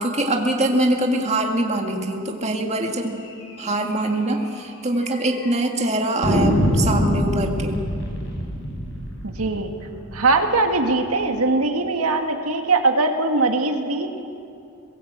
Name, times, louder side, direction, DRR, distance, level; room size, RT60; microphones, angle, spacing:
voice 1, 0.0-3.3 3.6-7.8, right 1 dB, 30° right, 2 dB, 2.0 m, -23 dB
sound 1, 3.4-3.6 3.9-4.0 4.3-4.4 5.0-5.5 6.2-11.0, equal, 60° left, 5.5 m, -25 dB
voice 2, 9.2-9.7 10.1-14.1, right 3 dB, 85° right, 4 dB, 1.9 m, -21 dB
22.0 x 17.5 x 8.1 m, 2.5 s
head